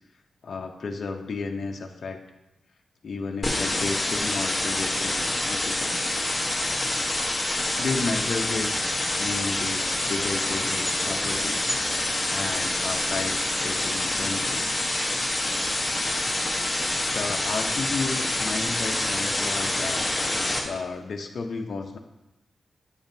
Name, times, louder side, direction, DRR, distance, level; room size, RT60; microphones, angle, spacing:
voice 1, 0.4-2.2 3.0-6.1 7.4-8.7 9.2-11.7 12.3-14.7 17.1-20.1 20.6-22.0, left 4 dB, 55° left, 2 dB, 0.6 m, -33 dB
sound 1, 3.4-20.6, left 1 dB, 20° left, 0.9 m, -27 dB
8.0 x 7.1 x 2.6 m, 0.94 s
wide cardioid pair, 155°, 0 cm